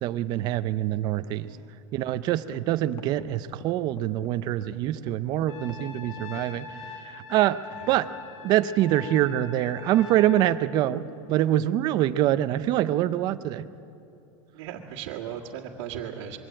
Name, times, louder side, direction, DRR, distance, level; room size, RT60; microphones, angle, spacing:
voice 1, 0.0-1.5 1.9-6.7 7.1-7.6 7.9-8.1 8.4-13.6, right 13 dB, 25° right, 13 dB, 0.4 m, -25 dB
voice 2, 1.4-1.7 7.7-8.0 12.0-12.1 14.5-16.4, right 9 dB, 55° right, -3 dB, 1.8 m, -37 dB
sound 1, 1.9-2.0 2.4-7.0, left 5 dB, 40° left, 1.4 m, -46 dB
Trumpet, 5.5-10.5, left 5 dB, 85° left, 4.4 m, -42 dB
22.5 x 16.5 x 8.8 m, 2.7 s
supercardioid pair, 175°, 16 cm